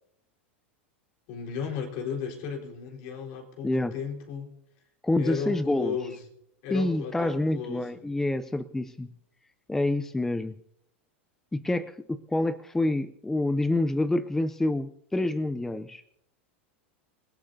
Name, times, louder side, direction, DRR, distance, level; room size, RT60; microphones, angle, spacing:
voice 1, 1.3-4.5 5.2-6.2 6.6-8.0, left 6 dB, 55° left, 1 dB, 4.0 m, -35 dB
voice 2, 3.6-3.9 5.0-6.0 6.7-9.1 9.7-10.5 11.5-16.0, left 2 dB, 5° left, 13 dB, 0.5 m, -27 dB
28.0 x 17.0 x 2.7 m, 0.76 s
supercardioid pair, 120°, 7 cm